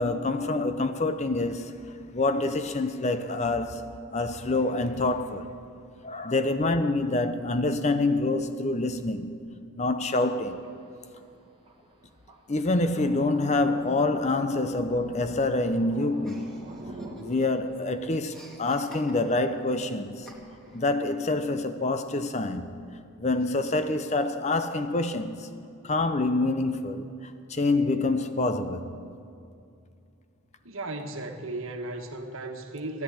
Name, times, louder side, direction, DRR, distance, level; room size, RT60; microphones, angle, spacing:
voice 1, 0.0-1.7 2.1-3.8 4.1-5.5 6.0-9.3 9.8-10.6 12.5-16.5 17.2-20.3 20.7-22.7 23.2-25.5 25.8-28.9, left 2 dB, 30° left, 0.6 m, -26 dB
Thunder, 10.1-21.4, right 1 dB, 25° right, 1.5 m, -47 dB
Chuckle chortle, 16.2-17.6 17.9-19.5 20.3-20.8, right 1 dB, ahead, 2.1 m, -49 dB
voice 2, 30.6-33.0, right 2 dB, 60° right, 1.5 m, -35 dB
15.5 x 11.0 x 8.8 m
head